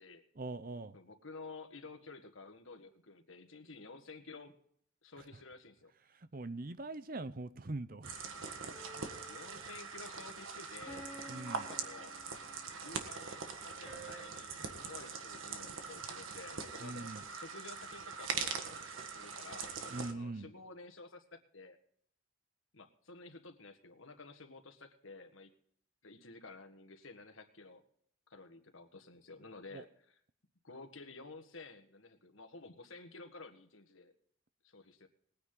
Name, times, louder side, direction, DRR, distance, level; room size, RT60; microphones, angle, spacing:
voice 1, 0.4-1.0 6.1-8.1 11.3-11.7 16.8-17.2 19.9-20.5 29.7-29.8, right 2 dB, 45° right, 13 dB, 0.7 m, -42 dB
voice 2, 0.9-4.5 5.0-5.9 9.3-11.1 11.7-12.2 12.8-21.8 22.7-25.5 26.0-27.8 28.3-30.2 30.6-34.1 34.6-35.1, left 3 dB, 80° left, 7 dB, 1.7 m, -52 dB
sound 1, 8.0-20.1, right 5 dB, 80° right, 1.6 m, -42 dB
sound 2, 8.7-9.7 10.9-12.8 13.9-14.3, right 1 dB, 5° right, 3.5 m, -52 dB
20.5 x 9.6 x 3.9 m, 0.64 s
head